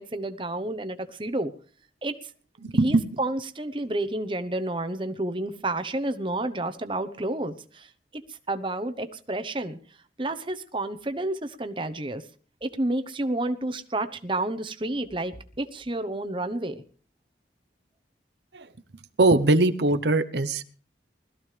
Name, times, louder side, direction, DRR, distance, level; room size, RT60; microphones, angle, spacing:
voice 1, 0.0-1.5 2.0-2.1 2.8-7.9 8.5-9.8 10.2-12.2 12.6-16.8, right 2 dB, 30° right, 0.9 m, -30 dB
voice 2, 2.6-3.0 18.5-18.7 19.2-20.6, right 2 dB, 75° right, 0.9 m, -21 dB
20.5 x 14.0 x 3.3 m
head